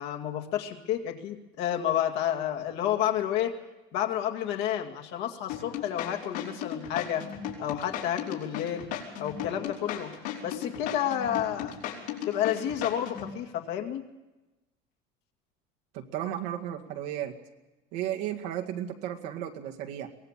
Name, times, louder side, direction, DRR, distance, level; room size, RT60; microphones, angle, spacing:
voice 1, 0.0-3.6 3.9-7.2 7.6-8.9 9.2-10.1 10.4-11.8 12.3-14.0, left 10 dB, 70° left, 3 dB, 2.3 m, -30 dB
sound 1, 5.5-13.3, left 10 dB, 85° left, 4.9 m, -36 dB
voice 2, 15.9-17.4 17.9-20.1, right 11 dB, 80° right, 3 dB, 2.1 m, -34 dB
23.0 x 17.5 x 7.4 m, 1.1 s
supercardioid pair, 120°, 20 cm